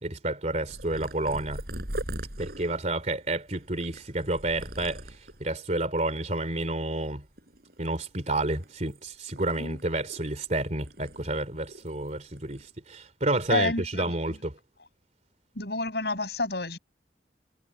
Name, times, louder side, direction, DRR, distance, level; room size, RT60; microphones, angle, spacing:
voice 1, 0.0-1.6 2.4-5.0 5.4-7.2 7.8-14.5, right 2 dB, 40° right, 3.0 m, -30 dB
Purr, 0.7-5.5 6.1-6.6 6.8-8.0 8.4-10.5 10.8-12.1 12.4-12.7 13.3-13.6, right 1 dB, 60° right, 7.0 m, -41 dB
voice 2, 9.4-9.8 13.5-14.4 15.5-16.8, left 2 dB, 65° left, 6.7 m, -30 dB
head